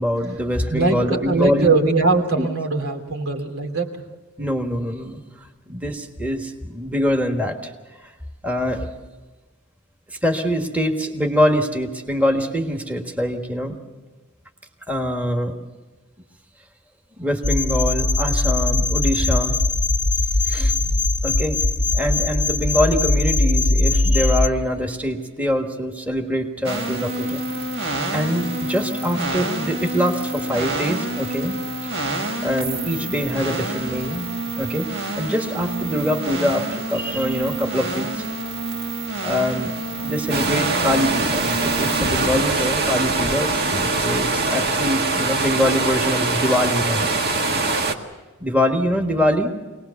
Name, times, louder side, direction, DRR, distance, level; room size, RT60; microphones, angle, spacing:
voice 1, 0.0-1.8 2.4-2.5 4.4-5.2 5.7-7.7 8.0-8.1 8.4-8.9 10.1-13.8 14.9-15.6 17.1-19.6 20.4-21.6 21.9-27.6 28.1-31.9 32.4-34.3 34.6-38.2 39.2-47.2 48.4-49.5, equal, 5° right, 2 dB, 1.5 m, -24 dB
voice 2, 0.7-4.0, right 3 dB, 85° right, 2 dB, 3.0 m, -21 dB
sound 1, 17.4-24.5, left 2 dB, 20° left, 1.0 m, -20 dB
sound 2, 26.6-42.3, right 2 dB, 65° right, 3.0 m, -28 dB
sound 3, 40.3-47.9, right 3 dB, 50° right, 1.6 m, -22 dB
24.5 x 19.0 x 7.0 m, 1.2 s
head